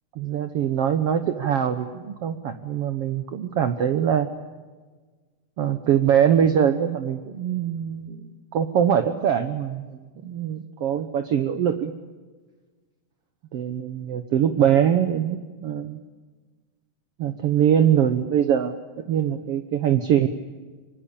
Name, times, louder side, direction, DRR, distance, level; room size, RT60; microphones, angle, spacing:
voice 1, 0.2-4.3 5.6-8.2 8.5-11.9 13.5-16.0 17.2-18.8 19.1-20.3, right 9 dB, 60° right, 8 dB, 1.8 m, -23 dB
26.0 x 25.0 x 8.7 m, 1.4 s
omnidirectional pair, 3.6 m